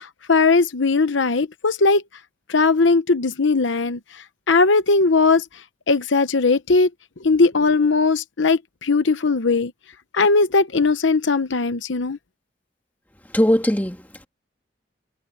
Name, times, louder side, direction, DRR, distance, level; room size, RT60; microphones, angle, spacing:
voice 1, 0.0-2.0 2.5-5.4 5.9-6.9 7.2-9.7 10.1-12.2, left 3 dB, 80° left, 0.9 m, -19 dB
voice 2, 13.3-14.3, left 1 dB, 10° left, 2.1 m, -20 dB
head